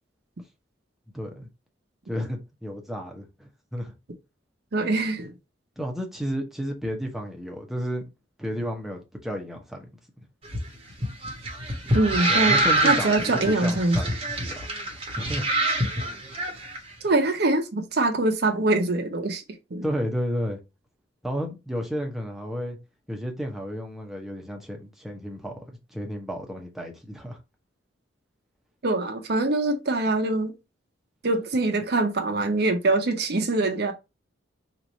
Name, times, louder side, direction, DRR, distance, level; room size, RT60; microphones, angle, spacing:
voice 1, 1.1-1.5 2.1-3.9 5.8-8.0 8.4-9.9 12.3-15.5 19.8-20.6 21.2-22.8 23.1-25.6 25.9-27.4, equal, ahead, 0.9 m, -32 dB
voice 2, 4.7-5.3 11.9-14.0 17.0-19.4 19.7-19.8 28.8-30.5 31.2-33.9, right 2 dB, 55° right, 0.7 m, -24 dB
sound 1, 10.4-16.8, right 1 dB, 30° right, 0.9 m, -26 dB
3.1 x 2.6 x 4.0 m
head